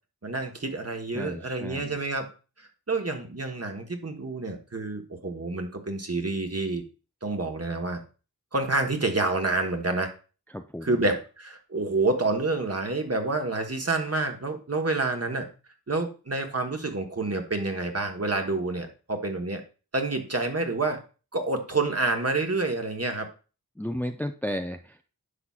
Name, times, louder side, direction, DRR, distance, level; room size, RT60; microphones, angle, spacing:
voice 1, 0.2-2.3 2.6-6.8 7.2-8.0 8.5-10.1 10.8-15.5 15.9-19.6 19.9-21.0 21.3-23.3, right 3 dB, 40° right, 4 dB, 1.3 m, -28 dB
voice 2, 1.1-2.0 10.5-11.0 23.8-25.0, equal, 5° left, 6 dB, 0.6 m, -33 dB
9.9 x 5.9 x 2.4 m, 0.35 s
wide cardioid pair, 40°, 37 cm